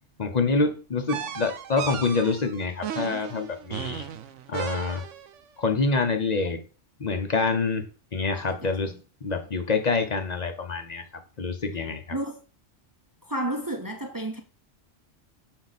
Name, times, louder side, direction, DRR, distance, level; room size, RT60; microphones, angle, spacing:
voice 1, 0.2-4.0 4.5-5.0 5.6-6.6 7.0-7.9 8.1-8.9 9.2-11.1 11.4-12.0, left 4 dB, 40° left, 0.8 m, -26 dB
sound 1, 1.1-5.4, right 9 dB, 85° right, 1.0 m, -35 dB
voice 2, 8.3-8.7 12.1-12.4 13.2-14.4, right 1 dB, 20° right, 0.6 m, -32 dB
6.3 x 4.4 x 4.1 m
omnidirectional pair, 1.3 m